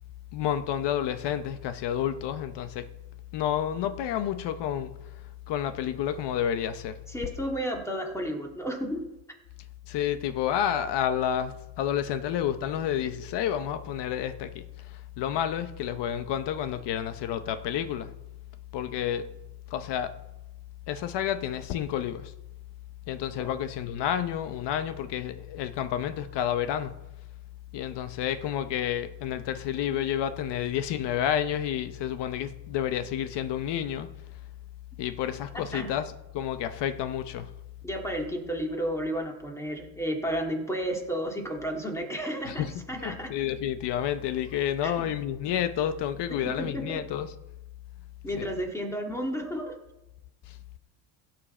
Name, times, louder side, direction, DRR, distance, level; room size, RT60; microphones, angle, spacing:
voice 1, 0.3-2.9 3.3-4.9 5.5-7.0 9.9-18.1 18.7-19.3 19.7-20.2 20.9-22.3 23.1-27.0 27.7-34.1 35.0-37.5 42.5-47.3 48.4-48.5 50.5-50.6, left 10 dB, 60° left, 0.9 m, -30 dB
voice 2, 7.1-9.0 23.4-23.5 35.5-35.9 37.8-43.3 44.8-45.1 46.4-47.0 48.2-49.8, equal, 5° left, 2.0 m, -32 dB
16.0 x 7.8 x 4.3 m
cardioid pair, 120°, 48 cm